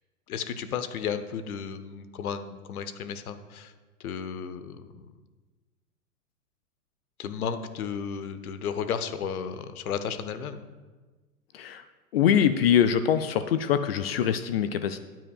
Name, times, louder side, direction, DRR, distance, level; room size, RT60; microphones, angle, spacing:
voice 1, 0.3-3.7 4.0-5.1 7.2-10.6, left 7 dB, 70° left, 11 dB, 0.9 m, -33 dB
voice 2, 12.1-15.0, left 9 dB, 45° left, 11 dB, 0.4 m, -23 dB
13.5 x 9.2 x 2.4 m, 1.3 s
hypercardioid pair, 120°, 46 cm